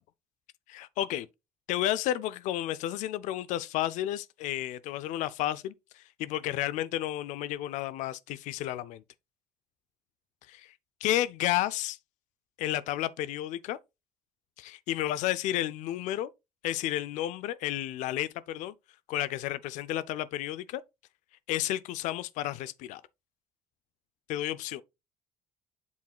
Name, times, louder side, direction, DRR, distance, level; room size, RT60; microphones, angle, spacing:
voice 1, 0.7-1.3 1.7-9.0 10.5-10.7 11.0-12.0 12.6-13.8 14.6-16.3 16.6-18.7 19.1-20.8 21.5-23.0 24.3-24.8, left 13 dB, 80° left, 0.5 m, -32 dB
7.3 x 6.1 x 2.3 m
cardioid pair, 115°, 12 cm